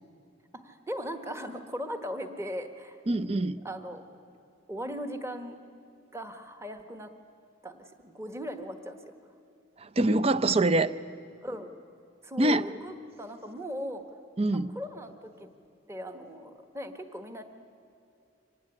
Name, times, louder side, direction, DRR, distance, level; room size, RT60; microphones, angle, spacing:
voice 1, 0.6-3.0 3.6-4.0 4.7-5.6 6.1-7.1 7.6-9.1 11.4-11.7 12.2-14.0 14.7-15.5 15.9-17.4, equal, 15° right, 7 dB, 1.3 m, -38 dB
voice 2, 3.1-3.6 9.8-10.9 12.4-12.7 14.4-14.7, right 2 dB, 30° right, 13 dB, 0.6 m, -24 dB
25.0 x 19.5 x 9.9 m, 2.6 s
head